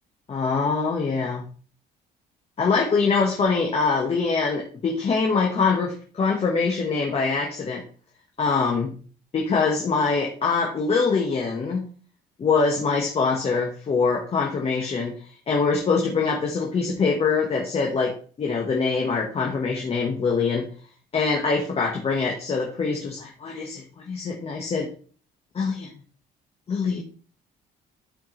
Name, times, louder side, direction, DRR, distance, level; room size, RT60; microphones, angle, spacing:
voice 1, 0.3-1.4 2.6-7.8 8.4-8.9 9.3-11.8 12.4-15.1 15.5-20.7 21.1-24.9 25.5-25.9 26.7-27.0, left 4 dB, 35° left, 0 dB, 1.5 m, -24 dB
11.5 x 4.6 x 3.3 m, 0.41 s
cardioid pair, 110°, 17 cm